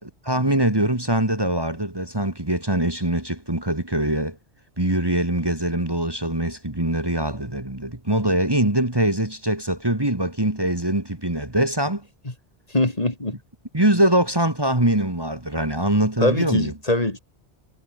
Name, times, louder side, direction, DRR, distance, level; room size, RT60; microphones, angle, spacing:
voice 1, 0.2-4.4 4.8-12.1 13.7-16.7, right 1 dB, 20° right, 2.5 m, -23 dB
voice 2, 12.7-13.4 16.2-17.2, left 1 dB, 35° left, 2.8 m, -22 dB
omnidirectional pair, 1.2 m